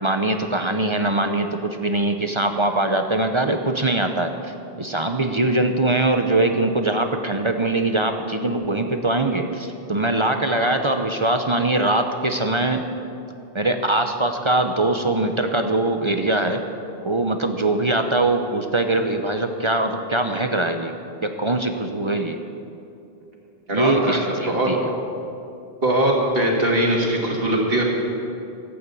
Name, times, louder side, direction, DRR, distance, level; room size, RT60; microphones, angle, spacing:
voice 1, 0.0-12.8 13.5-16.6 17.0-20.9 21.2-22.4 23.7-24.9, right 2 dB, 30° right, 6 dB, 0.7 m, -22 dB
voice 2, 23.7-24.2 24.5-24.7 25.8-27.8, right 1 dB, 65° right, -1 dB, 2.5 m, -21 dB
15.0 x 8.7 x 8.4 m, 2.6 s
omnidirectional pair, 1.0 m